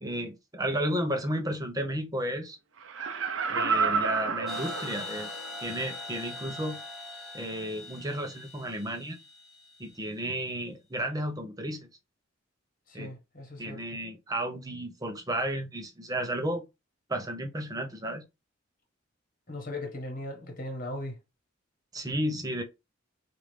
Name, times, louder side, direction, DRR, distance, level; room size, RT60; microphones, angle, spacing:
voice 1, 0.0-2.6 3.5-5.3 5.6-6.8 7.3-9.2 9.8-11.9 12.9-13.1 13.6-16.7 17.1-18.3 21.9-22.6, right 1 dB, 20° right, 0.7 m, -33 dB
Laughter, 2.8-5.5 5.9-6.0, right 5 dB, 70° right, 0.6 m, -29 dB
sound 1, 4.5-10.0, left 2 dB, ahead, 1.1 m, -42 dB
voice 2, 12.9-13.8 19.5-21.2, left 1 dB, 45° left, 1.5 m, -38 dB
4.8 x 2.6 x 3.3 m
head